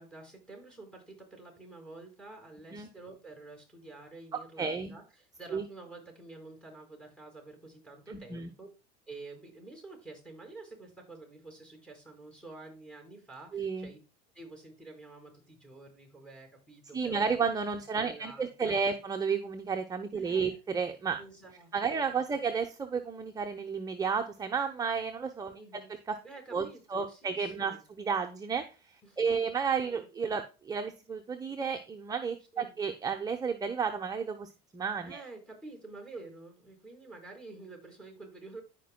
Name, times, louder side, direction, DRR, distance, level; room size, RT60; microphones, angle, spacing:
voice 1, 0.0-8.7 9.1-14.0 14.3-17.5 18.0-19.0 20.1-20.6 21.2-22.5 25.5-25.9 26.2-27.8 29.0-29.4 29.8-30.0 32.5-32.7 35.0-38.6, right 3 dB, 5° left, 2 dB, 4.8 m, -49 dB
voice 2, 4.6-4.9 5.5-5.6 8.1-8.5 13.5-13.9 16.9-21.2 21.7-26.2 26.5-35.2, right 5 dB, 20° right, 5 dB, 0.9 m, -32 dB
15.0 x 5.3 x 2.2 m, 0.32 s
supercardioid pair, 105°, 21 cm